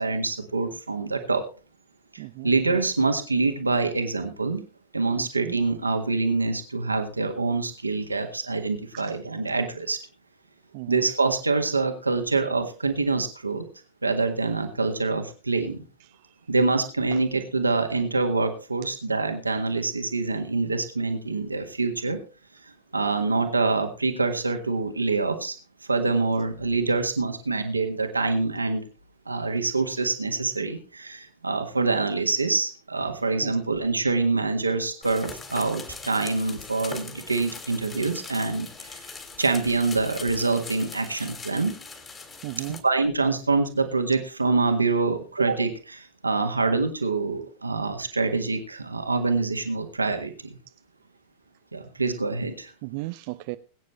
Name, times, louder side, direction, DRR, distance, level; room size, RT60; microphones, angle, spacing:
voice 1, 0.0-1.4 2.1-4.6 4.9-10.0 10.9-13.6 14.0-15.8 16.5-22.2 22.9-25.6 25.9-28.8 29.2-39.0 39.4-41.7 42.8-50.6 51.7-52.7, right 3 dB, 80° right, 1.7 m, -25 dB
voice 2, 2.2-2.5 5.2-5.5 10.7-11.0 17.1-17.2 33.4-33.5 42.4-42.8 52.8-53.6, right 22 dB, 45° right, 0.6 m, -35 dB
sound 1, 35.0-42.8, left 4 dB, 20° left, 3.0 m, -41 dB
22.0 x 9.2 x 3.2 m
figure-of-eight pair, 90°, 0 cm